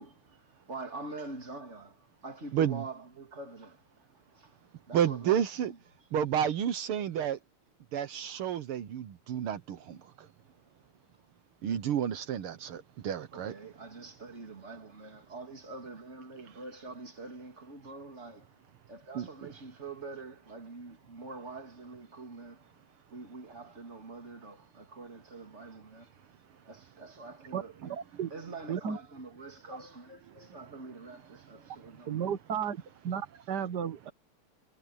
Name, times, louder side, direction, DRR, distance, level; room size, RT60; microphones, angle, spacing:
voice 1, 0.0-4.6 4.9-5.8 13.3-18.6 18.9-22.7 23.1-26.1 26.7-32.3, right 3 dB, 30° right, 3.3 m, -45 dB
voice 2, 2.5-2.9 4.9-5.7 6.1-7.4 7.9-10.3 11.6-13.5 19.2-19.3 30.3-30.4, right 9 dB, 80° right, 2.0 m, -31 dB
voice 3, 27.5-28.3 28.7-29.0 32.1-32.8 33.0-34.1, right 8 dB, 55° right, 1.7 m, -34 dB
omnidirectional pair, 2.4 m